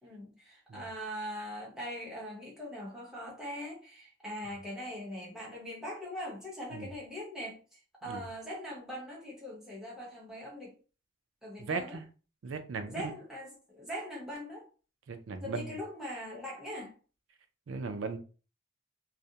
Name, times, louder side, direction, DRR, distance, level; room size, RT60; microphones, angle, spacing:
voice 1, 0.0-10.8 11.4-12.0 12.9-14.7 15.4-16.9, equal, 5° right, 0.8 m, -41 dB
voice 2, 11.6-12.0 12.4-13.0 15.1-15.7 17.7-18.2, right 4 dB, 90° right, 0.4 m, -37 dB
2.4 x 2.0 x 2.7 m
head